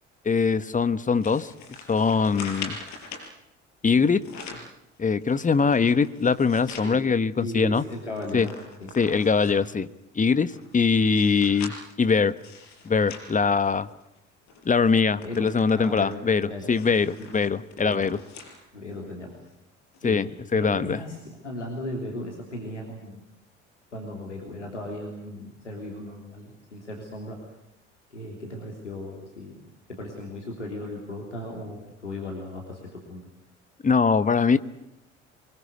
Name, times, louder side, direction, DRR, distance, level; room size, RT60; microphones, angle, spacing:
voice 1, 0.2-1.5 1.9-2.8 3.8-4.2 5.0-7.8 8.3-8.5 9.0-9.9 10.1-12.4 12.8-13.9 14.6-18.2 20.0-20.3 20.5-21.0 33.8-34.6, left 5 dB, 20° left, 14 dB, 1.2 m, -22 dB
sound 1, 1.2-3.3 4.0-4.7 5.2-6.9 7.4-7.5 7.7-9.8 10.3-14.1 14.5-14.7 15.0-18.6 19.0-19.1 19.9-20.0, left 4 dB, 55° left, 5.5 m, -42 dB
voice 2, 7.4-8.5 8.8-8.9 15.2-15.5 15.7-16.2 16.5-17.1 17.8-18.0 18.7-19.3 20.0-23.2 23.9-27.4 28.1-29.6 29.9-33.2, left 1 dB, 85° left, 0 dB, 3.3 m, -36 dB
24.5 x 22.5 x 8.1 m, 0.87 s
figure-of-eight pair, 55°, 35 cm